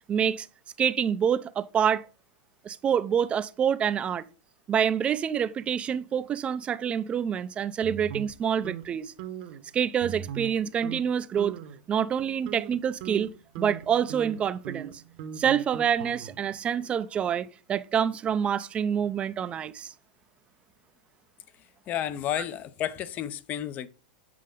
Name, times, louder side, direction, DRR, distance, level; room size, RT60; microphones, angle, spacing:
voice 1, 0.1-0.5 0.8-2.1 2.6-4.3 4.7-9.1 9.7-11.6 11.9-15.0 15.4-19.9, right 8 dB, 25° right, 0.5 m, -27 dB
sound 1, 7.8-8.9 9.2-9.6 10.0-10.6 10.8-11.0 11.4-11.8 12.2-16.5, right 10 dB, 55° right, 1.1 m, -39 dB
voice 2, 21.9-23.9, left 11 dB, 35° left, 0.6 m, -31 dB
7.6 x 5.0 x 3.8 m
hypercardioid pair, 120°, 5 cm